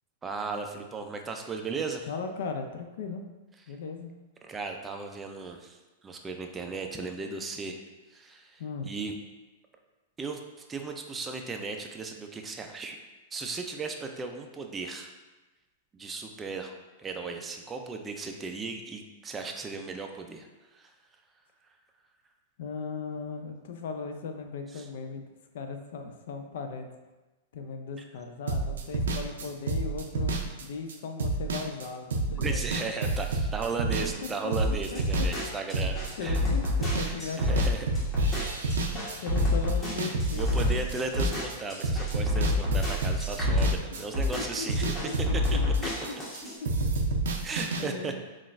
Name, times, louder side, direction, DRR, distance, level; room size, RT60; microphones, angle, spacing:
voice 1, 0.2-2.0 4.4-7.7 8.1-9.1 10.2-10.4 10.7-13.0 13.3-15.1 16.0-20.5 20.7-20.9 24.8-24.9 32.4-36.4 37.0-37.9 38.4-39.0 40.0-45.0 47.4-48.1, right 4 dB, 15° right, 4 dB, 0.3 m, -36 dB
voice 2, 2.1-3.2 3.7-4.1 8.6-8.9 22.6-25.3 25.5-26.9 27.5-32.9 34.9-35.0 35.4-35.6 36.2-37.6 38.9-41.0 44.4-45.9 47.8-48.2, left 5 dB, 70° left, 6 dB, 0.3 m, -38 dB
sound 1, 28.5-37.1 37.4-41.5 41.8-44.3 44.5-46.4 46.6-47.8, right 3 dB, 90° right, 0.4 m, -30 dB
sound 2, 34.6-46.6, left 2 dB, 15° left, 1.1 m, -28 dB
3.8 x 2.3 x 2.5 m, 1.2 s
hypercardioid pair, 140°, 0 cm